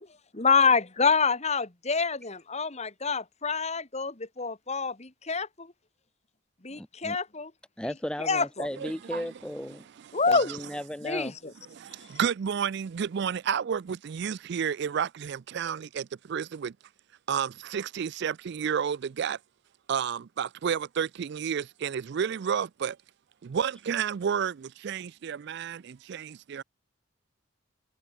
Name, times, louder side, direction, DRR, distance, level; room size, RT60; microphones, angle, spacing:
voice 1, 0.3-5.7 6.6-7.5 7.8-7.9 8.2-8.7 10.1-10.5 11.0-11.5, left 5 dB, 35° left, 2.0 m, -27 dB
voice 2, 6.7-7.2 7.8-9.9 10.3-11.3, left 1 dB, 5° left, 0.6 m, -35 dB
voice 3, 8.8-9.3 10.1-10.2 11.7-16.7 17.3-19.4 19.9-23.0 23.4-26.6, right 7 dB, 55° right, 0.4 m, -31 dB
head